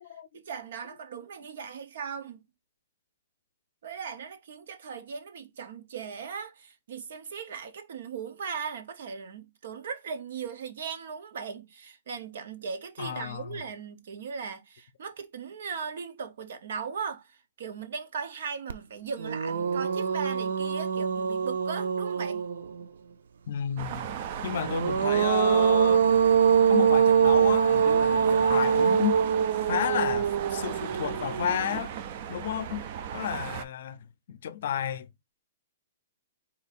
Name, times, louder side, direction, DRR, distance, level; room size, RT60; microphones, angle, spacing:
voice 1, 0.3-2.4 3.8-22.5 26.3-26.4, right 6 dB, 55° right, 0.9 m, -38 dB
voice 2, 13.0-13.6 23.5-24.2 24.4-26.1 26.7-29.2 29.6-32.0 32.3-32.9 33.1-35.1, left 10 dB, 50° left, 0.5 m, -32 dB
sound 1, 18.7-18.8 19.2-22.8 24.5-31.8, right 7 dB, 90° right, 0.6 m, -24 dB
sound 2, 23.8-33.6, right 8 dB, 35° right, 0.4 m, -37 dB
4.2 x 2.7 x 4.1 m
hypercardioid pair, 175°, 0 cm